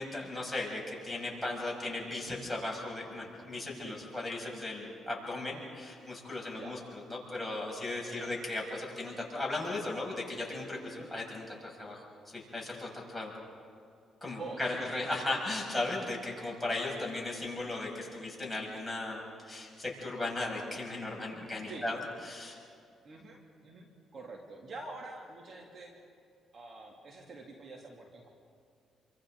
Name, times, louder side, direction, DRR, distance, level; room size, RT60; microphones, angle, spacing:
voice 1, 0.0-6.8 7.1-12.0 12.3-13.3 14.2-22.0 22.2-22.6, left 2 dB, 5° left, -3 dB, 6.7 m, -37 dB
voice 2, 14.4-15.0 21.7-21.9 23.0-26.0 26.5-28.3, right 3 dB, 50° right, 0 dB, 2.9 m, -46 dB
28.5 x 25.0 x 4.0 m, 2.4 s
cardioid pair, 90°, 0 cm